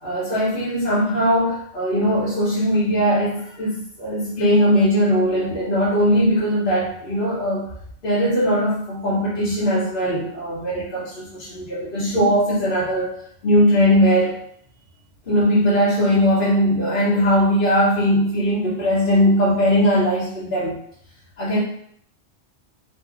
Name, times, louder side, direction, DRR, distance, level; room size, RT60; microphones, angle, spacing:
voice 1, 0.0-7.6 8.0-13.1 13.4-14.3 15.3-20.8 21.4-21.6, equal, 55° left, -8 dB, 0.9 m, -19 dB
2.6 x 2.1 x 3.5 m, 0.66 s
omnidirectional pair, 1.2 m